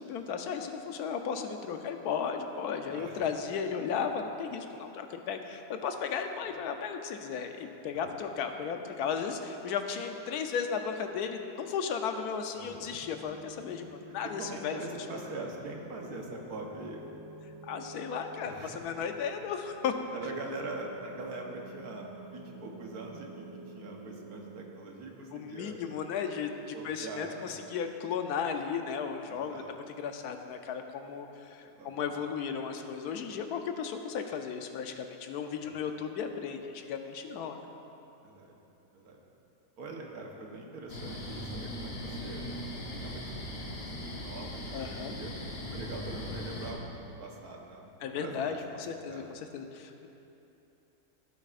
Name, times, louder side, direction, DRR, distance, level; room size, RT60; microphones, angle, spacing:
voice 1, 0.0-14.8 15.1-15.2 17.6-19.9 25.3-37.7 44.7-45.1 48.0-50.1, left 6 dB, 80° left, 6 dB, 1.2 m, -35 dB
voice 2, 2.9-3.2 3.6-3.7 6.5-6.6 12.5-13.0 14.4-17.0 18.4-18.9 20.1-25.8 26.7-27.5 29.2-29.7 31.6-32.1 35.6-36.0 38.2-38.5 38.9-39.2 39.8-42.5 43.0-45.3 45.7-49.2, right 2 dB, 75° right, 0 dB, 1.5 m, -43 dB
sound 1, 12.6-24.7, right 2 dB, 65° left, 1.9 m, -49 dB
sound 2, 40.9-46.7, left 1 dB, 45° left, 1.3 m, -39 dB
15.5 x 8.2 x 2.5 m, 2.9 s
omnidirectional pair, 1.6 m